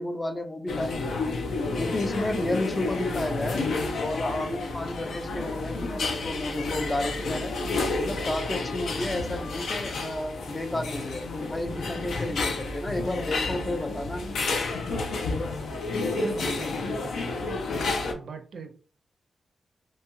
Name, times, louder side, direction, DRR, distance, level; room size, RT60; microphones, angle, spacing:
voice 1, 0.0-1.4 1.8-3.6 4.0-7.5 8.0-14.2, left 1 dB, 15° left, 6 dB, 0.3 m, -32 dB
sound 1, 0.7-18.1, left 3 dB, 85° left, 0.5 m, -30 dB
voice 2, 16.1-17.6 18.1-18.7, right 4 dB, 60° right, 5 dB, 0.4 m, -40 dB
2.7 x 2.2 x 2.9 m, 0.42 s
wide cardioid pair, 180°, 0 cm